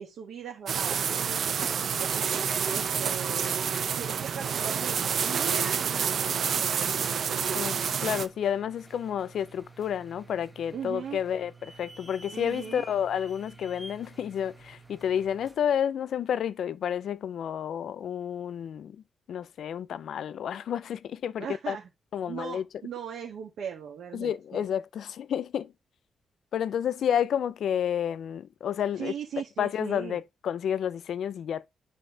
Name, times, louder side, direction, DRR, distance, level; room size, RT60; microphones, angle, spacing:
voice 1, 0.0-2.2 2.7-3.6 4.0-7.1 10.7-11.2 12.3-12.8 21.4-21.9 22.3-24.6 29.0-30.2, right 7 dB, 75° right, 1.4 m, -39 dB
sound 1, 0.7-8.3, right 7 dB, 50° right, 0.6 m, -28 dB
sound 2, 1.6-15.7, right 2 dB, 5° right, 1.0 m, -51 dB
voice 2, 8.0-19.0 19.3-21.8 22.1-22.6 24.1-25.7 26.5-29.1 29.6-31.7, left 9 dB, 65° left, 0.4 m, -30 dB
9.1 x 4.1 x 3.8 m
wide cardioid pair, 180°, 0 cm